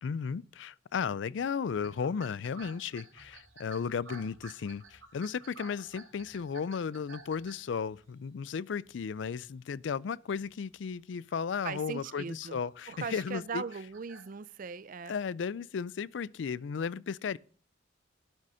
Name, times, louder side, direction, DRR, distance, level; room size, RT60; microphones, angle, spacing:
voice 1, 0.0-13.6 15.1-17.4, left 6 dB, 65° left, 0.4 m, -35 dB
sound 1, 1.7-8.3 8.8-9.3 9.6-10.0 10.3-10.5 11.1-14.3, right 4 dB, 85° right, 3.6 m, -53 dB
voice 2, 11.6-12.6 12.9-15.1, right 5 dB, 45° right, 0.4 m, -39 dB
12.0 x 6.2 x 5.5 m
head